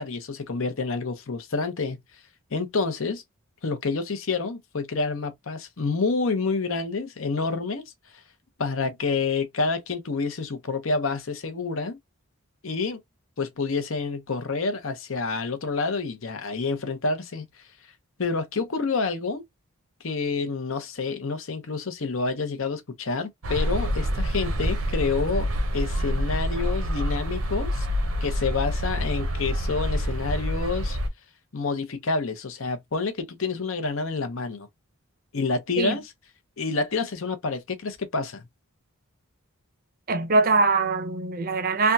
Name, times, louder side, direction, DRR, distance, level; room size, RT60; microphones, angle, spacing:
voice 1, 0.0-2.0 2.5-3.2 3.6-7.8 8.6-12.0 12.6-13.0 13.4-17.5 18.2-19.4 20.0-25.5 25.7-27.9 28.2-31.0 31.5-34.7 35.3-36.0 36.6-38.4, left 4 dB, 65° left, 0.8 m, -28 dB
sound 1, 23.4-31.1, equal, 75° right, 0.8 m, -27 dB
voice 2, 40.1-41.9, right 3 dB, 40° right, 0.6 m, -22 dB
3.4 x 2.3 x 2.7 m
head